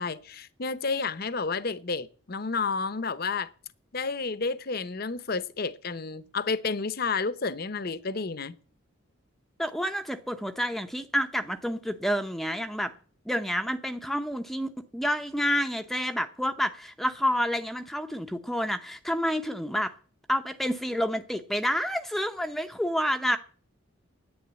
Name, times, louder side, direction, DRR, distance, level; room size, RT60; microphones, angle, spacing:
voice 1, 0.0-3.5 3.9-8.5, left 4 dB, 45° left, 0.7 m, -31 dB
voice 2, 9.6-12.9 13.3-19.9 20.3-23.4, equal, ahead, 0.6 m, -29 dB
10.5 x 9.3 x 8.0 m
head